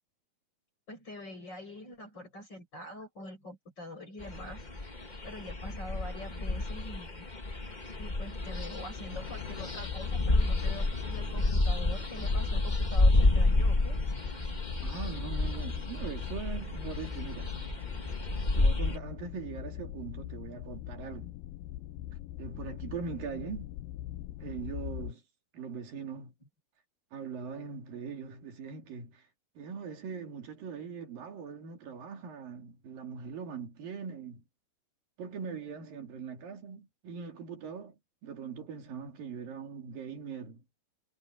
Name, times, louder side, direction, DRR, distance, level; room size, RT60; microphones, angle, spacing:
voice 1, 0.9-4.6 5.2-7.3 8.0-14.0 15.8-15.9, left 1 dB, 30° left, 8.0 m, -45 dB
sound 1, 4.2-19.0, left 2 dB, 60° left, 0.4 m, -30 dB
sound 2, 9.0-25.1, left 14 dB, 85° left, 2.5 m, -42 dB
voice 2, 14.8-17.5 18.6-21.3 22.4-23.7 24.4-25.2 25.5-26.3 27.1-29.3 29.6-34.4 35.2-40.6, right 6 dB, 75° right, 4.6 m, -41 dB
omnidirectional pair, 4.0 m